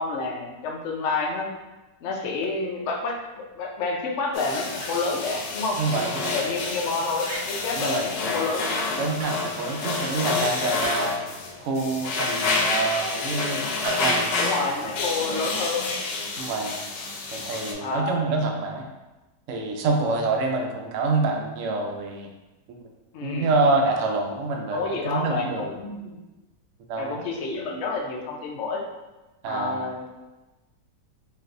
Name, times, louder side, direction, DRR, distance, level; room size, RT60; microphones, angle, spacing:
voice 1, 0.0-1.5 2.0-5.8 6.3-8.9 14.4-15.9 17.8-18.2 23.1-23.5 24.7-26.2 27.0-28.8 29.4-30.1, left 3 dB, 70° left, 0 dB, 0.7 m, -29 dB
sound 1, 4.3-17.7, left 3 dB, 85° left, 1.2 m, -29 dB
sound 2, 4.3-5.0 6.3-6.8 7.2-7.5 9.2-9.6 9.9-10.4 10.8-11.2 13.8-14.2, right 1 dB, 50° right, 0.9 m, -37 dB
voice 2, 5.8-6.3 7.8-8.3 9.0-11.2 11.6-14.3 14.8-14.9 16.4-16.7 17.3-18.9 19.5-22.3 22.7-22.8 23.2-25.7 26.9-27.3 29.4-29.8, right 3 dB, 75° right, 1 dB, 0.7 m, -26 dB
4.1 x 2.6 x 2.5 m, 1.1 s
omnidirectional pair, 1.8 m